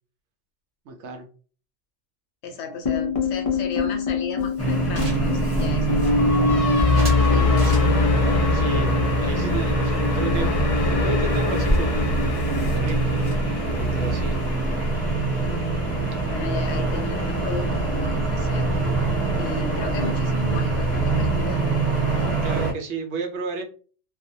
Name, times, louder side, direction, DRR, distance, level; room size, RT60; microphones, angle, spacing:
voice 1, 0.9-1.3 8.5-8.9 9.2-10.5 11.0-13.2 13.7-14.4 22.4-23.6, right 3 dB, 70° right, 4 dB, 0.9 m, -32 dB
voice 2, 2.4-6.6 7.3-8.0 16.3-18.7 19.4-21.7, left 3 dB, 70° left, 4 dB, 0.8 m, -34 dB
sound 1, 2.9-15.1, left 4 dB, 50° left, 0.4 m, -24 dB
sound 2, 4.4-6.5 6.9-8.3 8.8-10.1 10.4-10.5 10.8-10.9 11.1-14.9, equal, 35° right, 0.9 m, -32 dB
sound 3, 4.6-22.7, right 2 dB, 15° left, 0.7 m, -24 dB
2.4 x 2.1 x 2.6 m, 0.39 s
omnidirectional pair, 1.2 m